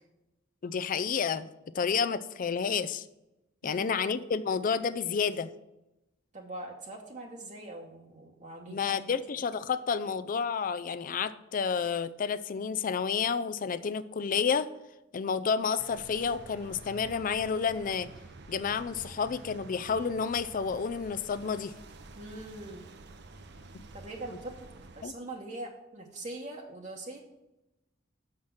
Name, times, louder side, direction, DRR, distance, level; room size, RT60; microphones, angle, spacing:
voice 1, 0.6-1.5 1.7-3.1 3.6-5.5 8.7-14.7 15.1-18.1 18.5-21.7 25.0-25.1, left 6 dB, 45° left, 13 dB, 0.4 m, -30 dB
voice 2, 6.3-9.2 22.2-22.8 23.9-24.7 25.0-27.2, right 2 dB, 40° right, 1 dB, 1.0 m, -42 dB
sound 1, 15.8-25.1, right 3 dB, 60° right, 0.7 m, -49 dB
6.4 x 5.8 x 7.1 m, 0.93 s
head